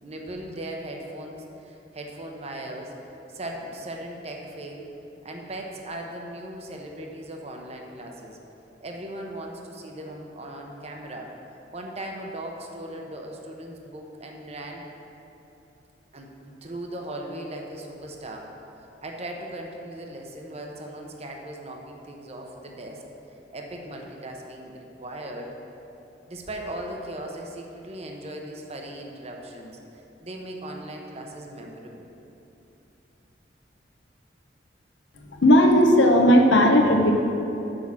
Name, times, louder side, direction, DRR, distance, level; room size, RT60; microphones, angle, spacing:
voice 1, 0.0-2.9 3.3-4.9 5.2-8.4 8.8-11.3 11.7-14.8 16.1-18.5 19.0-23.0 23.5-25.5 26.3-29.8 30.2-32.1, right 1 dB, 35° right, 1 dB, 0.8 m, -38 dB
voice 2, 35.2-37.1, equal, 85° left, 2 dB, 1.0 m, -16 dB
6.4 x 5.9 x 7.2 m, 2.9 s
head